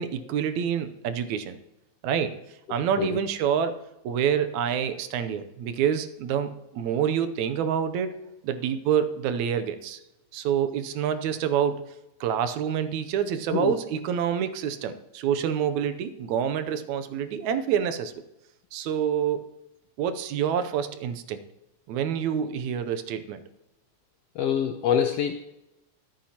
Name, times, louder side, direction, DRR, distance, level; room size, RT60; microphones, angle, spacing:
voice 1, 0.0-1.6 2.0-2.3 2.7-3.8 4.0-8.1 8.4-10.0 10.3-11.8 12.2-18.1 18.7-19.4 20.0-21.4 21.9-23.4, right 8 dB, 85° right, 10 dB, 2.1 m, -27 dB
voice 2, 24.3-25.3, left 8 dB, 75° left, 6 dB, 1.5 m, -25 dB
24.0 x 8.7 x 2.9 m, 0.92 s
omnidirectional pair, 3.3 m